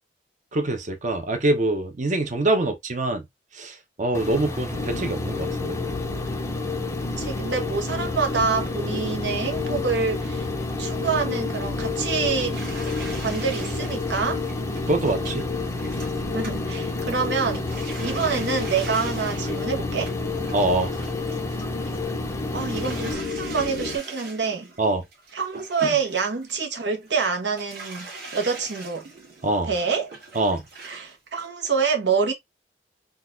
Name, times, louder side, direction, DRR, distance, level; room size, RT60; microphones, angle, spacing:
voice 1, 0.5-3.2 3.5-5.8 14.9-15.4 18.0-18.2 20.5-20.9 24.8-25.0 25.8-26.0 29.4-29.7 30.3-30.6, right 2 dB, 45° right, 0.7 m, -24 dB
sound 1, 4.1-23.1, left 1 dB, 15° left, 0.5 m, -32 dB
sound 2, 4.7-24.0, left 4 dB, 85° left, 0.7 m, -31 dB
voice 2, 7.2-10.5 10.8-12.6 13.2-14.4 16.3-20.1 22.5-24.7 25.3-29.0 29.6-30.1 30.8-32.3, right 5 dB, 80° right, 1.0 m, -26 dB
sound 3, 12.5-17.1 17.4-22.1 22.5-27.3 27.5-31.1 31.4-31.5, right 3 dB, 60° right, 1.8 m, -42 dB
3.9 x 2.4 x 2.5 m
head